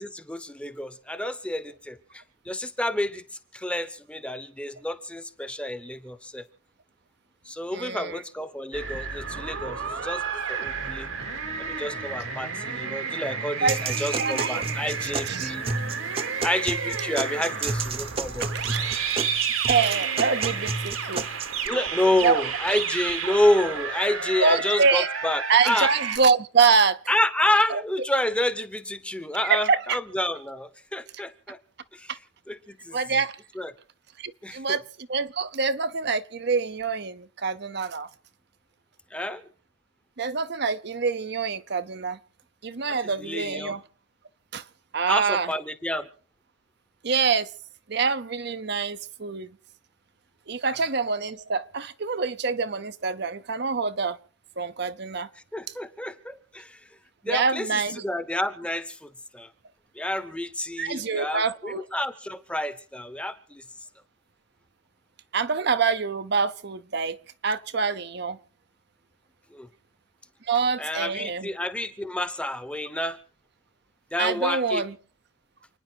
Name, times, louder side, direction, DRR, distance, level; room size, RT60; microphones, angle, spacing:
voice 1, 0.0-3.2 3.5-6.4 7.4-10.2 10.5-11.1 11.6-15.7 16.4-18.5 21.6-25.9 27.1-31.6 31.9-32.1 32.5-33.0 33.6-33.7 34.4-34.8 39.1-39.4 42.9-43.8 45.1-46.1 50.6-50.8 55.5-56.8 57.2-59.5 59.9-63.6 69.5-69.7 70.8-73.2 74.1-74.8, left 1 dB, 5° left, 0.9 m, -29 dB
voice 2, 7.7-8.2 13.6-13.8 14.2-15.8 18.4-18.8 19.7-21.2 22.2-22.4 24.4-25.1 25.5-27.0 27.7-27.8 29.5-30.0 32.1-32.2 32.9-33.4 34.2-38.1 40.2-42.2 42.6-43.8 44.5-44.6 44.9-45.5 47.0-47.5 47.9-49.5 50.5-54.2 54.6-55.3 57.3-58.0 60.8-61.8 65.3-67.2 67.4-68.4 70.4-71.5 74.2-74.9, right 5 dB, 55° right, 0.7 m, -25 dB
sound 1, 8.7-26.2, right 6 dB, 90° right, 2.5 m, -31 dB
sound 2, 13.7-21.7, right 3 dB, 30° right, 0.8 m, -31 dB
29.5 x 10.0 x 4.6 m
head